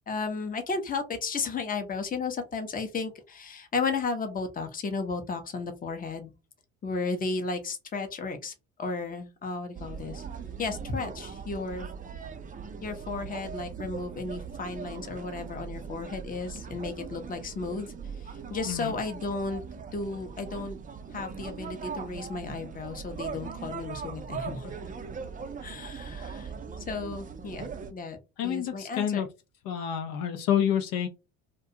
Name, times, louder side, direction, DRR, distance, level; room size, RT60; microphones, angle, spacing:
voice 1, 0.1-6.3 6.8-8.5 8.8-10.2 10.6-11.9 12.8-17.9 18.2-19.6 19.9-20.8 21.1-24.8 25.6-26.5 26.8-28.2 28.4-29.2, left 4 dB, 20° left, 6 dB, 0.7 m, -34 dB
sound 1, 9.7-27.9, right 6 dB, 20° right, 0.4 m, -40 dB
voice 2, 28.4-29.3 29.6-31.1, left 9 dB, 60° left, 6 dB, 0.6 m, -28 dB
2.4 x 2.2 x 2.7 m, 0.27 s
hypercardioid pair, 65°, 39 cm